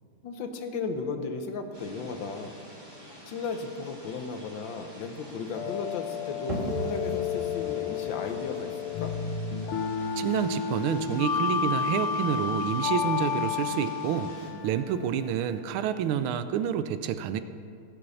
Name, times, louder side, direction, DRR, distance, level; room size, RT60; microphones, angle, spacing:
voice 1, 0.2-2.6 3.3-9.1, left 4 dB, 65° left, 6 dB, 1.6 m, -35 dB
sound 1, 1.7-14.5, equal, 10° right, 2.3 m, -48 dB
sound 2, 5.5-15.7, left 6 dB, 90° left, 1.8 m, -31 dB
sound 3, 6.5-12.0, right 2 dB, 35° right, 2.0 m, -40 dB
voice 2, 10.2-14.3 14.6-17.4, right 9 dB, 80° right, 11 dB, 1.4 m, -28 dB
16.5 x 6.2 x 7.0 m, 2.4 s
omnidirectional pair, 2.4 m